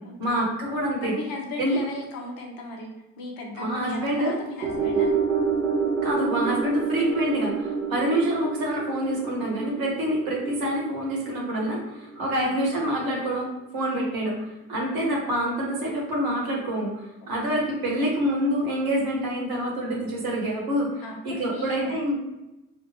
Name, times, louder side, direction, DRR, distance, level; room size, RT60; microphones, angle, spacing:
voice 1, 0.2-1.1 1.6-1.8 3.6-4.3 6.0-13.5 13.7-14.3 14.7-16.9 17.3-22.2, right 1 dB, 55° right, -2 dB, 1.1 m, -26 dB
voice 2, 1.0-5.1 12.3-12.5 14.7-15.3 15.8-15.9 17.2-17.3 21.0-22.0, left 3 dB, 55° left, 1 dB, 0.8 m, -37 dB
sound 1, 4.6-13.0 13.4-13.5, right 5 dB, 85° right, 0.6 m, -28 dB
3.6 x 2.1 x 2.8 m, 0.95 s
figure-of-eight pair, 45°, 41 cm